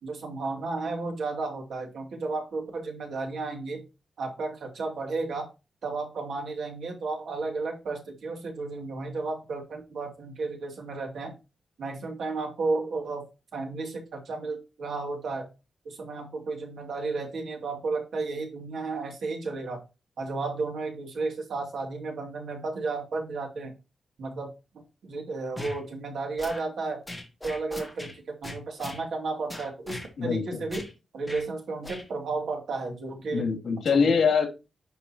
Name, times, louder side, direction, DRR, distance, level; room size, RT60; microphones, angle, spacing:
voice 1, 0.0-3.8 4.2-5.5 5.8-11.3 11.8-13.2 13.5-15.5 15.8-19.8 20.2-23.7 24.2-24.5 25.0-27.0 27.4-30.9 31.1-33.5 33.9-34.2, right 3 dB, 70° right, 2 dB, 2.5 m, -33 dB
sound 1, 25.6-25.8 26.4-26.6 27.1-28.1 28.4-29.0 29.5-30.1 30.7-30.9 31.3-31.4 31.8-32.0, left 1 dB, 5° left, 1.9 m, -39 dB
voice 2, 30.2-30.6 33.3-34.5, left 5 dB, 75° left, 2 dB, 2.5 m, -23 dB
10.5 x 5.6 x 2.9 m, 0.29 s
wide cardioid pair, 170°, 0 cm